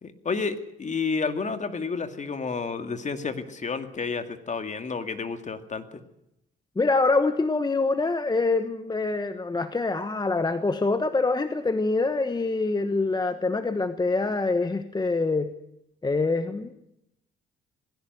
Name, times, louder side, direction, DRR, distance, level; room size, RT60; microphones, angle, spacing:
voice 1, 0.0-6.0, left 4 dB, 35° left, 9 dB, 2.2 m, -30 dB
voice 2, 6.8-15.5 16.0-16.8, left 3 dB, 20° left, 10 dB, 1.2 m, -25 dB
20.0 x 16.5 x 7.9 m, 0.81 s
cardioid pair, 90°, 20 cm